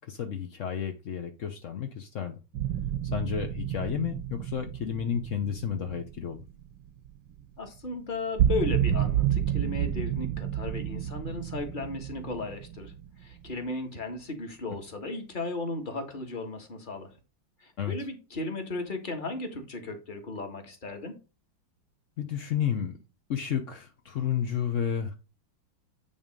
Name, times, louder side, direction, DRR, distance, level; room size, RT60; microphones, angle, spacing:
voice 1, 0.1-2.4 3.1-6.4 17.8-17.9 22.2-23.0 23.3-25.1, left 8 dB, 60° left, 0.8 m, -31 dB
sound 1, 2.5-7.4 7.8-7.9 8.2-13.7, right 10 dB, 70° right, 1.5 m, -30 dB
voice 2, 7.6-12.9 13.2-17.1 17.6-21.1, left 3 dB, 25° left, 1.5 m, -35 dB
9.6 x 3.5 x 5.2 m
omnidirectional pair, 2.3 m